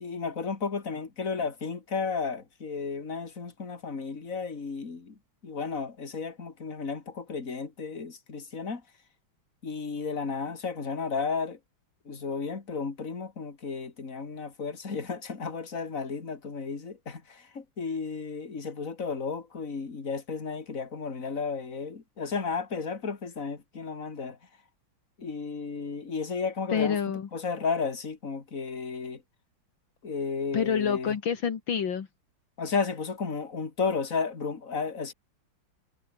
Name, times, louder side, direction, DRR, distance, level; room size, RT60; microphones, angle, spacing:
voice 1, 0.0-5.2 5.4-8.8 9.6-11.6 12.0-24.4 25.2-27.0 27.3-29.2 30.0-31.2 32.6-35.1, left 5 dB, 40° left, 3.1 m, -33 dB
voice 2, 26.7-27.3 30.5-32.1, left 7 dB, 70° left, 2.5 m, -27 dB
omnidirectional pair, 2.2 m